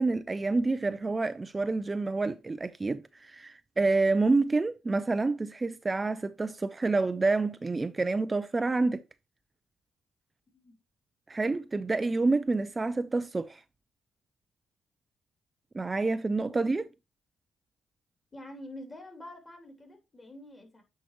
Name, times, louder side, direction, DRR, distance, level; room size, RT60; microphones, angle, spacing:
voice 1, 0.0-9.0 11.3-13.6 15.7-16.8, right 3 dB, 25° right, 0.4 m, -28 dB
voice 2, 18.3-20.8, left 1 dB, 20° left, 2.9 m, -46 dB
9.0 x 4.6 x 3.1 m
cardioid pair, 90°, 0 cm